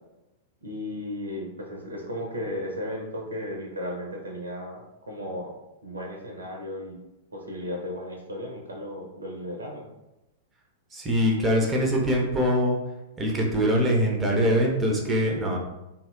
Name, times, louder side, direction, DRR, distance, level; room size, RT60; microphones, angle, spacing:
voice 1, 0.6-5.5 5.8-7.0 7.3-9.8, left 1 dB, 75° right, 1 dB, 0.5 m, -35 dB
voice 2, 10.9-12.8 13.2-15.6, equal, 15° right, 0 dB, 0.5 m, -23 dB
2.6 x 2.0 x 2.4 m, 0.97 s
figure-of-eight pair, 100°, 0 cm